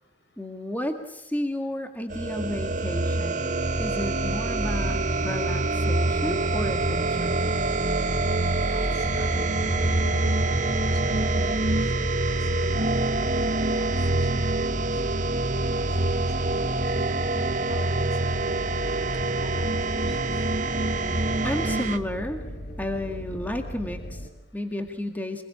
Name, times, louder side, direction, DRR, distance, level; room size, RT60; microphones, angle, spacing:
voice 1, 0.4-3.5 3.8-7.4 21.4-22.4 22.8-25.4, left 1 dB, 10° left, 5 dB, 2.0 m, -32 dB
sound 1, 2.1-22.0, right 2 dB, 45° right, 1.3 m, -25 dB
sound 2, 6.1-24.3, equal, 45° left, 4.7 m, -36 dB
voice 2, 9.1-11.6 11.9-14.8 15.5-16.8 17.0-17.2 17.7-18.8 19.1-19.8 20.1-20.2, left 1 dB, 75° left, 7 dB, 5.5 m, -45 dB
26.0 x 21.5 x 8.6 m, 0.91 s
head